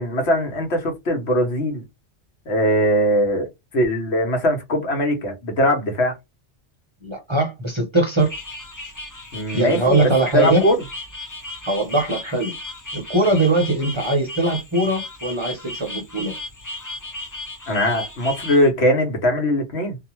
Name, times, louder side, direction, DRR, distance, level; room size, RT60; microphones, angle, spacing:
voice 1, 0.0-1.8 2.5-3.5 3.7-6.2 9.3-10.8 17.7-20.0, equal, 70° left, 1.2 m, -20 dB
voice 2, 7.0-8.3 9.5-10.6 11.6-12.6 12.9-16.3, right 2 dB, 30° right, 0.8 m, -21 dB
sound 1, 8.2-18.7, left 2 dB, 20° left, 0.6 m, -35 dB
2.7 x 2.1 x 2.9 m
omnidirectional pair, 1.2 m